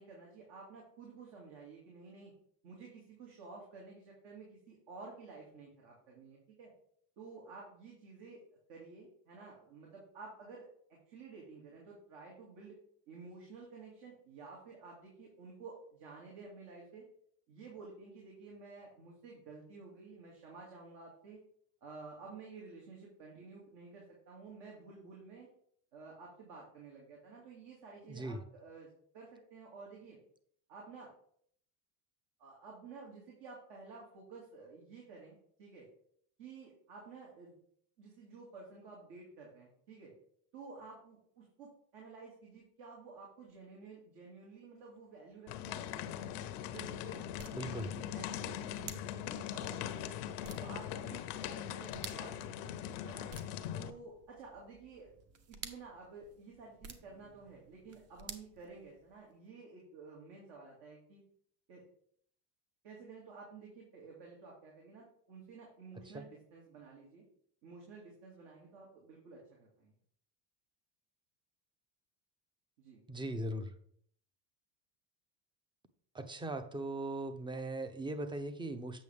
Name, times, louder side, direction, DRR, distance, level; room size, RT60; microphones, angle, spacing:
voice 1, 0.0-2.3 2.6-6.7 7.2-8.4 8.7-12.8 13.1-17.0 17.5-21.4 21.8-25.5 25.9-30.2 30.7-31.1 32.4-35.9 36.4-37.5 38.0-40.1 40.5-46.2 46.6-50.2 50.6-52.7 53.0-53.3 53.7-55.1 55.5-61.2 61.7-61.8 62.8-67.2 67.6-69.9 72.8-73.0, right 4 dB, 65° right, -2 dB, 2.4 m, -52 dB
voice 2, 28.1-28.4 47.5-47.9 66.1-66.3 73.1-73.7 76.1-79.0, right 1 dB, 10° right, 10 dB, 0.6 m, -39 dB
sound 1, 45.5-53.9, left 10 dB, 85° left, 0.8 m, -41 dB
sound 2, 46.3-59.4, right 5 dB, 35° right, 0.9 m, -54 dB
8.2 x 6.1 x 3.5 m, 0.65 s
supercardioid pair, 115°, 45 cm